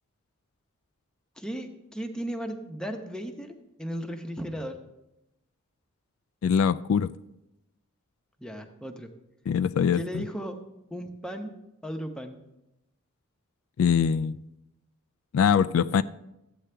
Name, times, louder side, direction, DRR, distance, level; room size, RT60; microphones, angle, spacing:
voice 1, 1.4-4.8 8.4-9.1 9.9-10.6 10.9-12.4, equal, 5° left, 0.8 m, -36 dB
voice 2, 6.4-7.1 9.5-10.2 13.8-14.4 15.3-16.0, left 7 dB, 75° left, 0.3 m, -23 dB
13.5 x 8.7 x 3.3 m
head